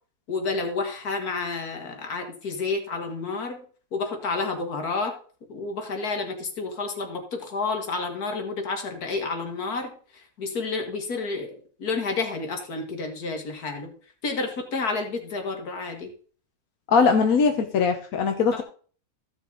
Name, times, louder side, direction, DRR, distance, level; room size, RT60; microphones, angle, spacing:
voice 1, 0.3-3.6 3.9-5.1 5.5-9.9 10.4-13.9 14.2-16.1 18.5-18.6, left 3 dB, 90° left, 4 dB, 2.2 m, -30 dB
voice 2, 16.9-18.6, left 5 dB, 70° left, 5 dB, 1.4 m, -21 dB
14.5 x 6.1 x 3.9 m, 0.42 s
omnidirectional pair, 1.6 m